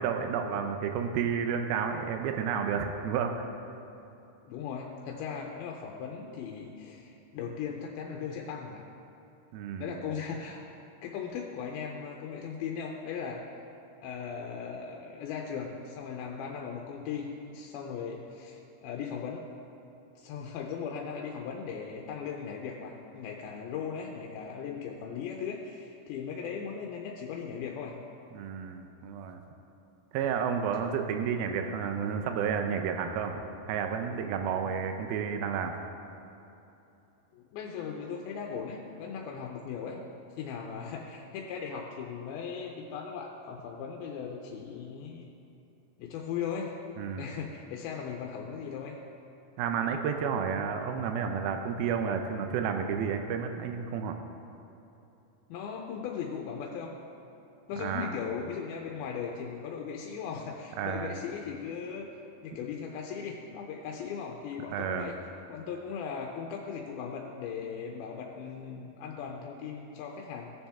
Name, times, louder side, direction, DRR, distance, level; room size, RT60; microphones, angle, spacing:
voice 1, 0.0-3.5 9.5-10.0 28.3-29.4 30.1-35.7 47.0-47.3 49.6-54.2 57.8-58.2 60.8-61.2 64.7-65.1, right 7 dB, 90° right, 5 dB, 2.5 m, -31 dB
voice 2, 4.5-8.9 9.8-10.6 11.0-13.4 14.0-19.5 20.2-28.0 37.3-40.0 40.4-45.3 46.0-46.8 47.2-49.0 55.5-56.9 57.7-62.1 62.4-65.2 65.5-70.5, left 6 dB, 90° left, 0 dB, 2.6 m, -38 dB
17.5 x 7.2 x 3.5 m, 2.9 s
omnidirectional pair, 4.2 m